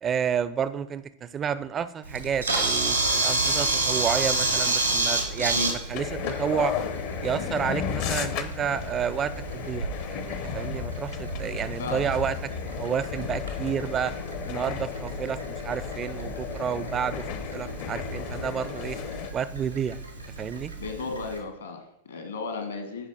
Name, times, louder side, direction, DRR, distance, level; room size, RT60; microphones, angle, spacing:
voice 1, 0.0-6.7 7.2-12.4 12.8-14.1 14.5-17.3 17.5-19.0 19.3-20.0 20.4-20.7, right 7 dB, 25° right, 14 dB, 0.5 m, -30 dB
Camera, 2.0-21.4, right 2 dB, 85° right, 1.6 m, -31 dB
sound 1, 5.9-19.3, left 8 dB, 45° left, 0.7 m, -34 dB
voice 2, 20.8-23.1, left 4 dB, 70° left, 6 dB, 1.5 m, -35 dB
9.9 x 5.0 x 4.0 m, 0.80 s
figure-of-eight pair, 90°, 0 cm